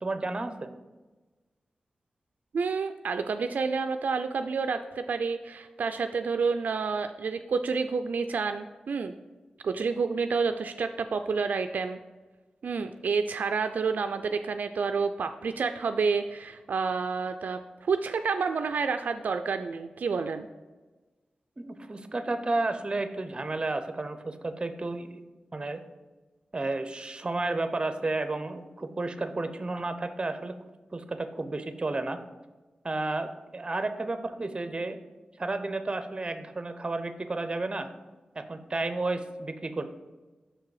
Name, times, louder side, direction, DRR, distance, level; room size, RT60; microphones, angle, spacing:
voice 1, 0.0-0.7 21.6-25.2 25.5-25.8 26.5-30.5 30.9-32.2 32.8-35.0 35.4-37.9 38.4-39.9, right 2 dB, 35° right, 9 dB, 0.6 m, -32 dB
voice 2, 2.5-9.1 9.6-12.0 12.6-20.5, right 5 dB, 75° right, 8 dB, 0.3 m, -29 dB
6.1 x 4.7 x 4.7 m, 1.2 s
cardioid pair, 60°, 3 cm